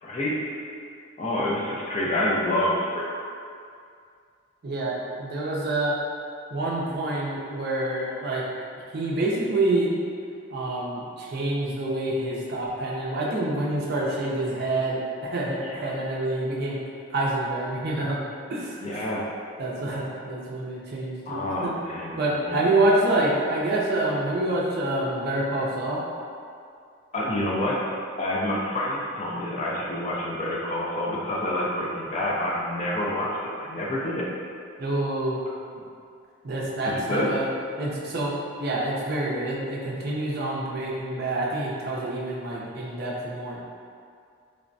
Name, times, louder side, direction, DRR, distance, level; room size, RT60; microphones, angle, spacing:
voice 1, 0.0-0.4 1.2-3.0 18.8-19.2 21.3-22.2 22.4-22.6 27.1-27.8 28.2-34.3 36.9-37.3, left 1 dB, 35° left, -4 dB, 0.3 m, -27 dB
voice 2, 4.6-5.9 6.5-8.4 8.9-9.9 10.5-16.8 17.1-18.2 18.5-19.1 19.6-21.7 22.2-26.0 34.8-35.4 36.4-37.5 37.8-38.3 38.6-43.6, right 2 dB, 50° right, -4 dB, 0.4 m, -27 dB
3.2 x 2.0 x 2.5 m, 2.3 s
head